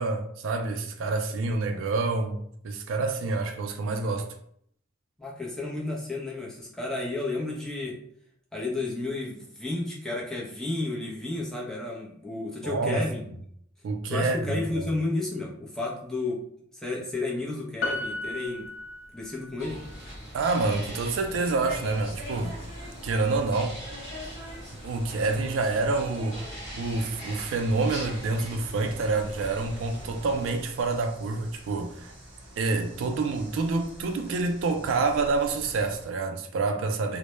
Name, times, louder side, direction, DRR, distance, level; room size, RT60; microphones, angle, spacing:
voice 1, 0.0-4.3 12.6-13.0 13.8-14.8 20.3-22.6 23.0-23.8 24.8-26.4 26.7-32.1 32.6-37.2, right 3 dB, 70° right, 0.3 m, -27 dB
voice 2, 5.2-8.0 8.5-13.2 14.1-16.5 16.7-18.7 19.1-19.8, left 2 dB, 5° left, 0.5 m, -32 dB
Piano, 17.8-19.6 19.9-20.0, left 2 dB, 65° left, 0.4 m, -34 dB
sound 1, 19.6-30.5, equal, 20° left, 0.9 m, -41 dB
sound 2, 21.8-36.1, right 1 dB, 25° right, 0.8 m, -49 dB
2.1 x 2.0 x 2.9 m
head